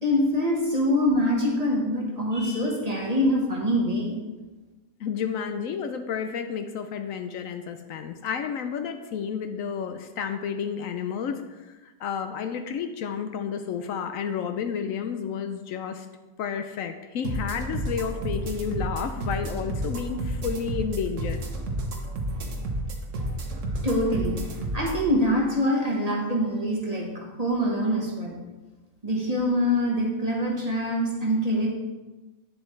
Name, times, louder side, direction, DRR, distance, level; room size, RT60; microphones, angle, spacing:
voice 1, 0.0-4.1 23.8-24.4 24.7-28.4 29.0-31.7, equal, 30° right, -2 dB, 1.3 m, -24 dB
voice 2, 5.0-16.1 16.4-21.4, left 7 dB, 70° left, 7 dB, 0.9 m, -31 dB
sound 1, 17.2-25.0, right 1 dB, 60° right, 1.4 m, -31 dB
9.2 x 7.2 x 3.2 m, 1.2 s
omnidirectional pair, 1.5 m